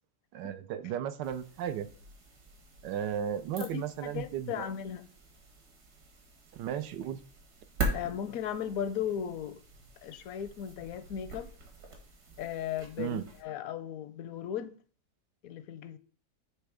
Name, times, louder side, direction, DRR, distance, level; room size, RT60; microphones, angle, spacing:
voice 1, 0.3-1.9 2.8-4.7 6.5-7.2 13.0-13.3, right 9 dB, 90° right, 1.3 m, -35 dB
sound 1, 1.2-13.4, right 2 dB, 65° right, 2.0 m, -42 dB
voice 2, 3.6-5.1 7.9-9.6 10.0-11.5 12.4-14.7 15.4-16.0, left 9 dB, 70° left, 0.9 m, -36 dB
8.3 x 3.3 x 4.9 m
omnidirectional pair, 1.8 m